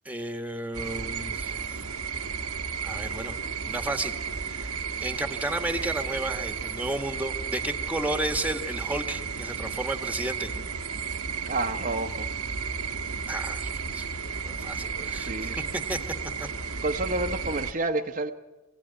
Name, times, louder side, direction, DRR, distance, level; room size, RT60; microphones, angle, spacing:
voice 1, 0.0-1.5 2.8-3.3 3.6-4.8 5.0-10.5 13.3-14.1 14.4-16.0 16.4-16.5, right 2 dB, 5° right, 1.4 m, -32 dB
sound 1, 0.7-17.7, right 6 dB, 85° right, 1.2 m, -33 dB
voice 2, 11.4-12.3 14.7-15.7 16.8-18.3, right 2 dB, 35° right, 0.9 m, -30 dB
23.5 x 16.5 x 10.0 m
head